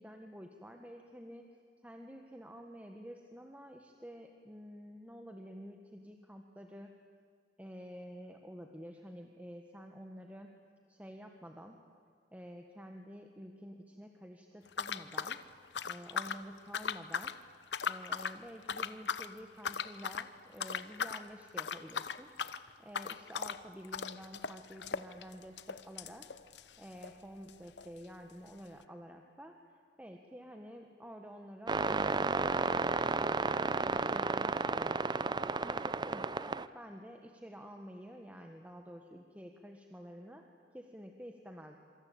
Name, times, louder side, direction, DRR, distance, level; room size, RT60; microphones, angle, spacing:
voice 1, 0.0-1.5 1.8-6.9 7.6-10.5 10.9-11.8 12.3-15.4 15.8-17.3 17.8-22.3 22.8-26.3 26.8-29.5 30.0-35.3 35.6-40.4 40.7-41.8, equal, 10° right, 3 dB, 1.5 m, -50 dB
sound 1, 14.7-16.4 16.7-17.4 17.7-18.4 18.7-19.3 19.6-20.3 20.6-21.2 21.5-27.2 27.5-27.6 27.8-27.9 28.5-28.6, left 6 dB, 75° left, 0.9 m, -38 dB
sound 2, 31.7-36.7, right 3 dB, 25° right, 0.6 m, -32 dB
26.5 x 25.5 x 8.8 m, 2.2 s
head